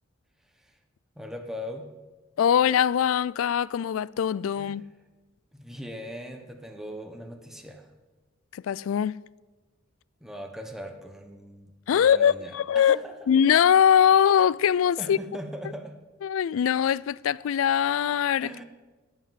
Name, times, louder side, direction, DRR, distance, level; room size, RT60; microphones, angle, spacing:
voice 1, 1.2-1.9 4.6-4.8 5.5-7.9 10.2-13.1 15.0-16.0 18.4-18.6, equal, ahead, 1.0 m, -40 dB
voice 2, 2.4-4.8 8.5-9.2 11.9-13.0 13.3-15.2 16.2-18.5, left 8 dB, 75° left, 0.3 m, -22 dB
16.0 x 5.6 x 7.4 m
head